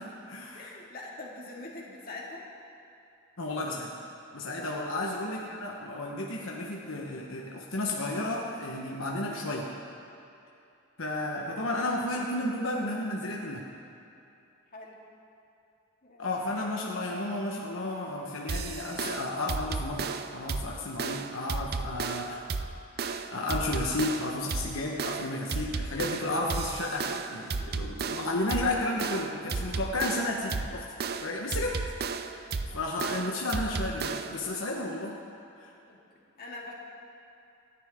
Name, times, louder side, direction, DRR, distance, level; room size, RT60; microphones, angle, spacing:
voice 1, 0.0-0.7 3.4-3.9 4.3-9.7 11.0-13.6 16.2-22.4 23.0-30.9 31.2-31.8 32.3-35.2 35.6-35.7, left 2 dB, 75° left, -2 dB, 1.3 m, -32 dB
voice 2, 0.5-2.5 4.5-4.8 14.7-15.0 16.0-16.4 32.7-32.9 35.9-36.7, left 2 dB, 45° left, -3 dB, 2.3 m, -44 dB
sound 1, 18.5-34.5, right 4 dB, 50° right, 0.6 m, -34 dB
27.0 x 10.0 x 3.7 m, 2.7 s
head